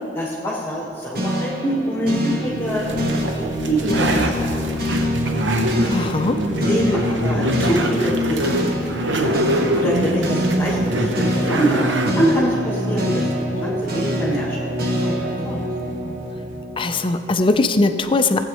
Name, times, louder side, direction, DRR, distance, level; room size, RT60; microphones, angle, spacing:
voice 1, 0.1-4.6 6.5-9.4 9.7-11.9 12.1-13.2 13.6-14.7 15.0-15.6, right 1 dB, 15° left, -5 dB, 1.3 m, -25 dB
sound 1, 1.1-17.4, equal, 55° right, 1.2 m, -25 dB
sound 2, 2.7-16.6, right 1 dB, 80° right, 0.8 m, -25 dB
voice 2, 5.9-6.4 16.8-18.5, left 2 dB, 30° left, 9 dB, 0.5 m, -20 dB
17.5 x 8.1 x 3.0 m, 2.4 s
head